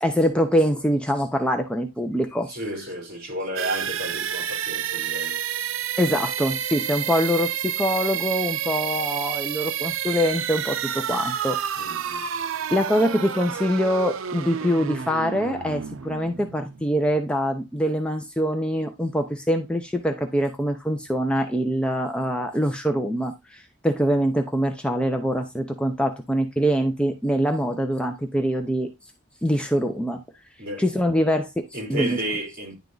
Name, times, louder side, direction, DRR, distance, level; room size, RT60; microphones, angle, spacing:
voice 1, 0.0-2.6 6.0-11.6 12.7-28.9 29.4-30.2 30.8-32.2, equal, 5° left, 0.6 m, -24 dB
voice 2, 2.5-5.4 11.8-12.2 30.6-30.8 31.7-32.8, right 1 dB, 50° right, 3.3 m, -32 dB
sound 1, 3.6-17.3, right 9 dB, 85° right, 0.5 m, -29 dB
10.5 x 3.5 x 3.9 m
head